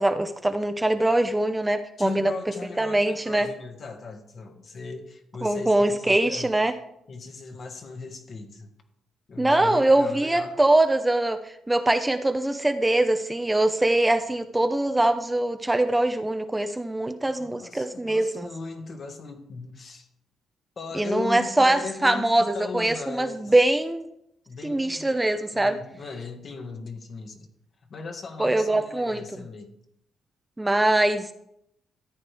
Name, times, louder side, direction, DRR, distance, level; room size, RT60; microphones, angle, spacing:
voice 1, 0.0-2.3 2.8-3.5 5.4-6.7 9.4-18.5 20.9-24.1 24.6-25.8 28.4-29.2 30.6-31.3, right 1 dB, 10° right, 8 dB, 0.7 m, -23 dB
voice 2, 2.0-6.5 7.1-8.7 9.3-10.6 17.3-20.1 20.8-23.5 24.5-25.2 25.5-27.5 27.9-29.8, left 4 dB, 50° left, 4 dB, 1.7 m, -38 dB
13.5 x 8.7 x 3.5 m, 0.77 s
cardioid pair, 90°, 0 cm